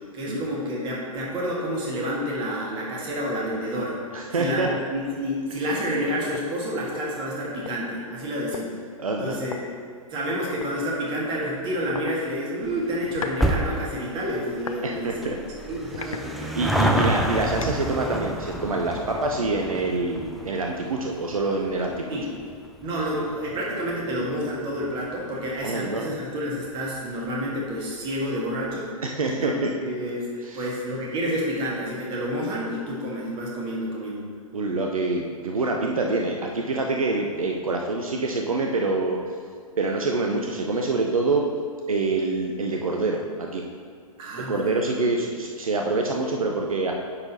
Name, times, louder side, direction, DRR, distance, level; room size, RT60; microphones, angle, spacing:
voice 1, 0.1-4.0 4.3-8.8 9.2-9.7 10.1-15.3 15.7-16.6 22.1-22.3 22.8-28.9 29.3-30.3 30.5-34.3 44.2-44.8, equal, 25° right, -4 dB, 1.8 m, -29 dB
sound 1, 3.5-3.7 4.2-4.3 4.7-5.0 6.0-6.1 6.3-7.7 8.5-8.7 9.4-9.6 10.6-10.8 11.9-12.1 12.9-13.6 13.9-14.8 15.3-15.4 15.9-16.7 17.1-17.9, left 6 dB, 65° left, 0.6 m, -38 dB
voice 2, 4.1-4.7 9.0-9.4 14.8-15.4 16.6-22.1 25.6-26.0 29.0-29.7 30.4-30.7 34.5-39.2 39.8-41.4 41.9-43.6 44.4-46.9, right 3 dB, 70° right, 1 dB, 0.7 m, -26 dB
sound 2, 12.6-25.4 25.7-25.8 26.7-26.8 27.0-27.1 27.3-27.4, right 1 dB, ahead, 0.3 m, -30 dB
9.7 x 4.2 x 4.0 m, 2.1 s
figure-of-eight pair, 110°, 18 cm